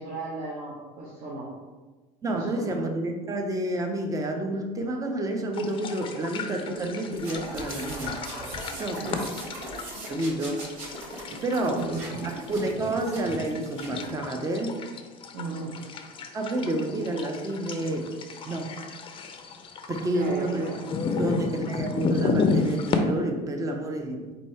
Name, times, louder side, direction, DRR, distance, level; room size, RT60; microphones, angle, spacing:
voice 1, 0.0-1.5 2.3-2.7 9.0-9.3 11.7-12.3 15.3-15.7 20.1-20.8, right 3 dB, 50° right, -5 dB, 0.9 m, -35 dB
voice 2, 2.2-8.2 8.8-9.2 10.1-10.6 11.4-11.9 12.2-14.8 16.3-18.1 18.4-18.7 19.9-20.7 21.2-24.3, right 1 dB, 20° right, 3 dB, 0.6 m, -29 dB
sound 1, 5.5-23.0, left 4 dB, 30° left, 0.5 m, -33 dB
sound 2, 7.1-14.1, right 1 dB, 90° right, 1.3 m, -39 dB
4.3 x 2.7 x 4.3 m, 1.3 s
cardioid pair, 120°, 18 cm